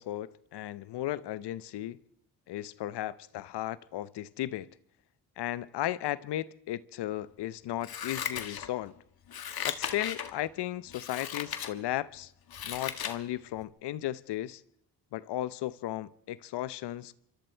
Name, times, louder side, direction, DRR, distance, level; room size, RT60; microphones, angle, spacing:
voice 1, 0.0-2.0 2.5-4.7 5.4-8.9 9.6-12.3 12.6-14.6 15.1-17.1, left 14 dB, 90° left, 0.8 m, -35 dB
Scissors, 7.8-8.9 9.3-10.3 10.9-11.7 12.2-13.2 13.6-13.7, left 8 dB, 65° left, 1.8 m, -36 dB
26.5 x 25.0 x 4.5 m
cardioid pair, 90°, 39 cm